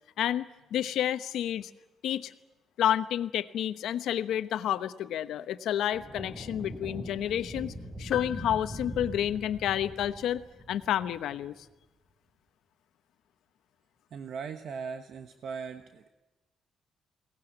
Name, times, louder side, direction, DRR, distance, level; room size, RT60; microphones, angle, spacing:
voice 1, 0.2-1.7 2.0-2.3 2.8-7.7 8.0-11.5, left 11 dB, 85° left, 11 dB, 1.0 m, -30 dB
sound 1, 5.9-11.5, equal, 15° right, 3.4 m, -42 dB
sound 2, 8.1-9.9, left 10 dB, 65° left, 0.8 m, -41 dB
voice 2, 14.1-16.1, right 6 dB, 60° right, 7 dB, 1.2 m, -39 dB
22.5 x 18.5 x 10.0 m, 1.1 s
cardioid pair, 145°, 0 cm